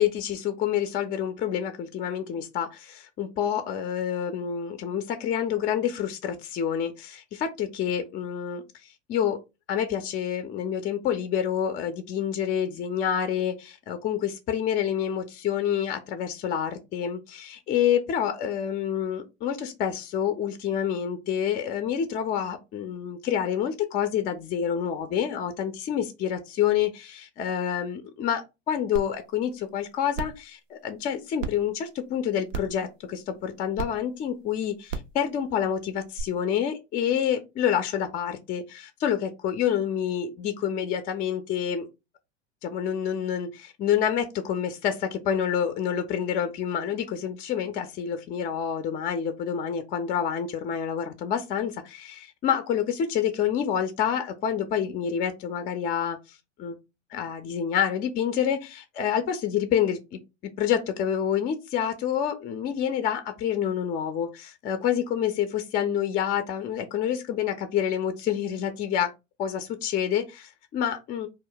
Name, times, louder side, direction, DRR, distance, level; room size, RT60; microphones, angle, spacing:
voice 1, 0.0-8.6 9.1-9.4 9.7-41.9 42.6-56.2 56.6-56.8 57.1-60.2 60.6-69.1 69.4-71.3, left 9 dB, 25° left, 0.3 m, -28 dB
sound 1, 29.0-29.1 29.5-29.6 30.1-30.4 31.4-31.5 32.5-32.8 33.8-33.9 34.9-35.1 36.2-36.3, right 5 dB, 85° right, 0.6 m, -32 dB
2.1 x 2.1 x 3.6 m
hypercardioid pair, 85°, 37 cm